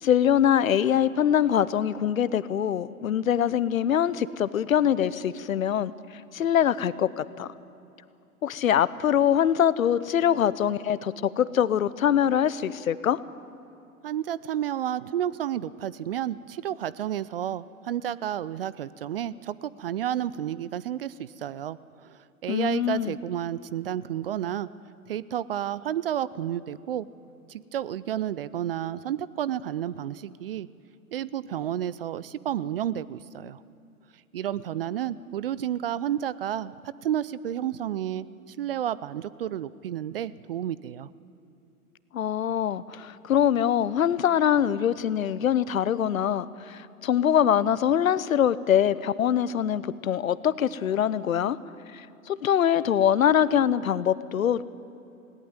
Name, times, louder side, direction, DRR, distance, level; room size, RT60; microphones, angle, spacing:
voice 1, 0.0-5.9 6.3-7.5 8.4-13.2 22.5-23.1 42.1-51.6 51.9-54.6, left 9 dB, 65° left, 17 dB, 0.9 m, -23 dB
voice 2, 14.0-24.7 25.1-27.1 27.5-30.7 31.1-33.6 34.3-41.1, right 10 dB, 40° right, 19 dB, 0.5 m, -31 dB
19.5 x 18.0 x 9.6 m, 2.7 s
figure-of-eight pair, 120°, 44 cm